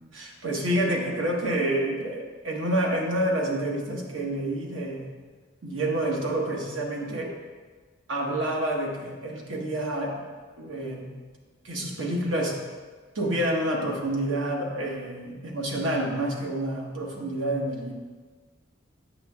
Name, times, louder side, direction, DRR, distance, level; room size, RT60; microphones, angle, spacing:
voice 1, 0.1-5.1 5.6-7.3 8.1-10.2 10.6-11.1 11.6-12.6 13.1-17.9, right 1 dB, 85° right, -1 dB, 1.1 m, -28 dB
8.4 x 5.9 x 2.3 m, 1.4 s
head